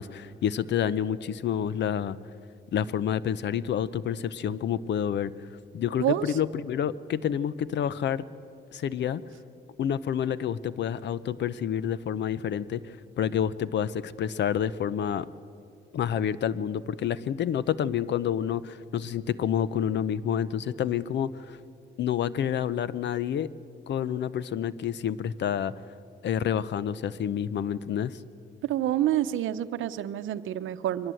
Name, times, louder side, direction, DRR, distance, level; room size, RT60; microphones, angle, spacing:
voice 1, 0.0-2.2 2.7-5.3 5.7-8.2 8.7-9.2 9.8-15.3 15.9-21.6 22.0-23.5 23.9-25.7 26.2-28.2, left 9 dB, 60° left, 18 dB, 0.7 m, -28 dB
voice 2, 6.0-6.4 28.6-31.1, right 12 dB, 80° right, 12 dB, 0.8 m, -28 dB
23.5 x 20.0 x 7.8 m, 2.5 s
cardioid pair, 90°, 20 cm